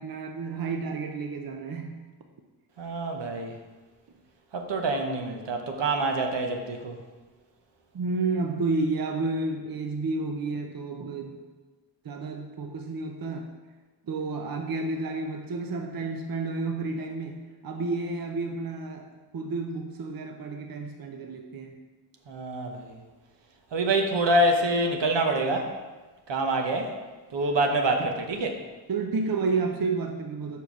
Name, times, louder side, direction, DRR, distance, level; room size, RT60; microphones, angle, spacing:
voice 1, 0.0-2.0 7.9-11.4 12.0-13.5 14.1-19.1 19.3-21.8 28.9-30.6, right 3 dB, 55° right, 4 dB, 0.7 m, -31 dB
voice 2, 2.8-3.5 4.5-7.0 22.3-23.0 23.7-25.7 26.3-26.9 27.3-28.6, right 1 dB, 80° right, 3 dB, 1.0 m, -26 dB
5.3 x 4.6 x 6.0 m, 1.3 s
cardioid pair, 65°, 43 cm